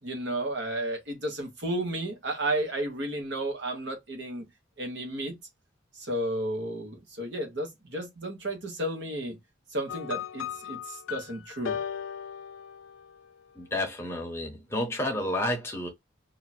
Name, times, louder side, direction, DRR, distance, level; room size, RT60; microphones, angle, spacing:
voice 1, 0.0-4.5 4.8-5.4 5.9-9.4 9.7-11.8, right 1 dB, 65° right, 1.3 m, -32 dB
sound 1, 9.9-13.3, left 8 dB, 85° left, 0.4 m, -37 dB
voice 2, 13.6-15.9, left 1 dB, 15° left, 0.9 m, -30 dB
2.8 x 2.4 x 4.3 m
head